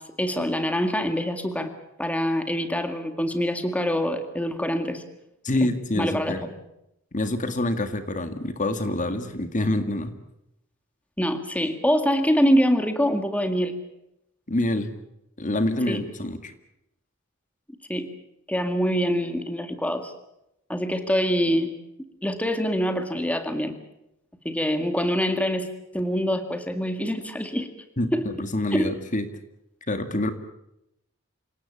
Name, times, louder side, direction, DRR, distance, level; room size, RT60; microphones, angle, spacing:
voice 1, 0.0-1.7 2.0-5.0 6.0-6.5 11.2-13.7 15.9-16.0 17.9-18.1 18.5-20.1 20.7-21.7 22.2-23.8 24.5-25.7 25.9-27.7 28.1-28.3 28.7-28.9, equal, 5° left, 7 dB, 1.9 m, -25 dB
voice 2, 5.4-6.4 7.1-10.1 14.5-14.9 15.4-16.5 28.0-29.3 29.9-30.3, left 1 dB, 40° left, 9 dB, 2.0 m, -26 dB
27.5 x 17.5 x 8.7 m, 0.83 s
head